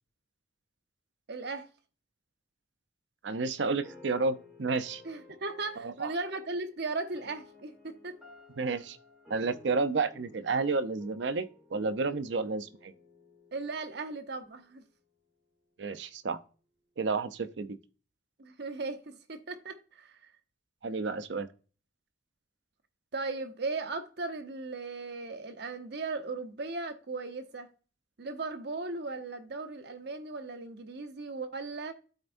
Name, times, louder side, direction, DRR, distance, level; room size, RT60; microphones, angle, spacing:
voice 1, 1.3-1.7 5.0-8.2 12.1-12.2 13.5-14.8 18.4-20.3 23.1-27.7 28.2-31.9, right 3 dB, 65° right, 1.0 m, -37 dB
voice 2, 3.2-5.0 5.8-6.1 8.6-9.0 9.3-12.9 15.8-16.4 17.0-17.8 20.8-21.5, right 4 dB, 85° right, 0.6 m, -31 dB
sound 1, 3.8-14.9, left 3 dB, 5° right, 2.5 m, -55 dB
13.0 x 4.4 x 2.6 m
head